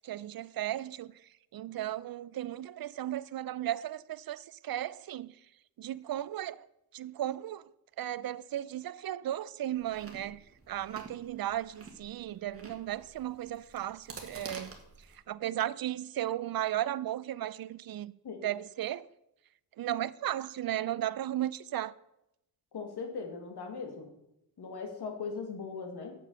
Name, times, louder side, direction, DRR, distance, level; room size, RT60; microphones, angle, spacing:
voice 1, 0.0-1.1 1.5-5.3 5.8-6.7 6.9-7.6 8.0-14.7 15.3-18.1 18.4-19.0 19.8-21.9, right 12 dB, 60° right, 0.5 m, -35 dB
Chewing mastication, 9.7-15.2, right 4 dB, 35° right, 1.9 m, -49 dB
voice 2, 22.7-24.1 24.6-26.1, left 5 dB, 70° left, 2.1 m, -39 dB
8.4 x 6.9 x 6.7 m
wide cardioid pair, 110°, 40 cm